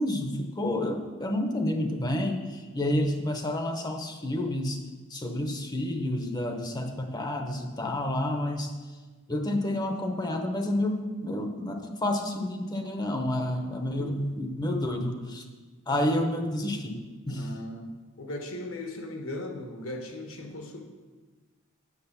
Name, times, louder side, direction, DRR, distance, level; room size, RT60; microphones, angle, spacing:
voice 1, 0.0-4.8 5.1-8.7 9.3-15.4 15.9-17.5, left 1 dB, 20° left, 4 dB, 0.8 m, -29 dB
voice 2, 17.3-17.9 18.2-20.8, left 1 dB, 75° left, 3 dB, 1.4 m, -38 dB
8.1 x 6.3 x 7.0 m, 1.3 s
head